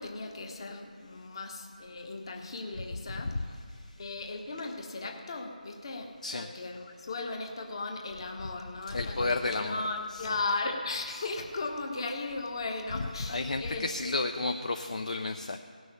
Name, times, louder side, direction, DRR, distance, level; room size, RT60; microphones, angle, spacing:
voice 1, 0.0-3.5 4.0-13.9, left 3 dB, 35° left, 3 dB, 1.3 m, -36 dB
voice 2, 8.9-9.8 10.1-10.3 13.0-15.6, left 3 dB, 50° left, 5 dB, 0.6 m, -32 dB
17.5 x 6.2 x 8.6 m, 2.1 s
figure-of-eight pair, 160°, 5 cm